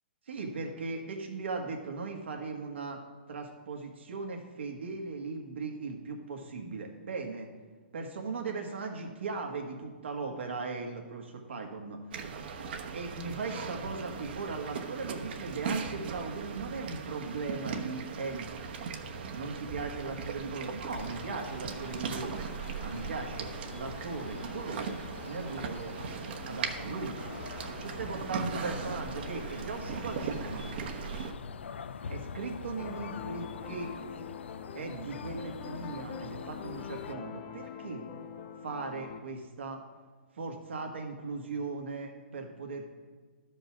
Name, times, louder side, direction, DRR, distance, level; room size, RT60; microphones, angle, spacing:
voice 1, 0.3-3.0 3.3-7.5 7.9-12.0 12.9-18.5 19.3-22.5 22.8-25.0 25.2-26.0 26.4-27.2 27.7-30.7 32.1-33.9 34.7-38.0 38.6-39.8 40.3-42.8, right 4 dB, 80° right, 2 dB, 1.6 m, -38 dB
sound 1, 12.1-31.3, right 5 dB, 60° right, 1.1 m, -39 dB
sound 2, 20.9-37.1, left 6 dB, 85° left, 0.5 m, -45 dB
sound 3, 32.8-39.2, left 8 dB, 40° left, 0.8 m, -44 dB
12.0 x 5.3 x 6.0 m, 1.4 s
hypercardioid pair, 140°, 6 cm